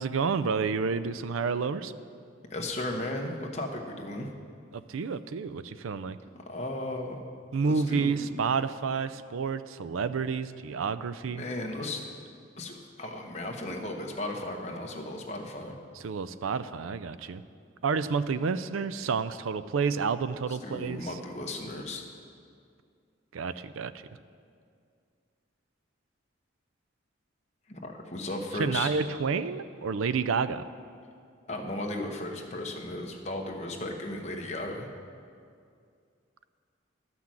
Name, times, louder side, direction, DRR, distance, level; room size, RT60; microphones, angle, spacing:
voice 1, 0.0-1.9 4.7-6.2 7.5-11.4 16.0-17.4 17.8-21.1 23.3-23.9 28.6-30.6, right 5 dB, 90° right, 14 dB, 0.4 m, -29 dB
voice 2, 2.5-4.3 6.5-7.2 7.6-8.2 11.3-12.0 12.6-15.7 20.5-22.0 27.7-28.9 31.5-34.9, left 1 dB, 35° left, 1 dB, 1.0 m, -35 dB
11.5 x 6.0 x 7.5 m, 2.3 s
head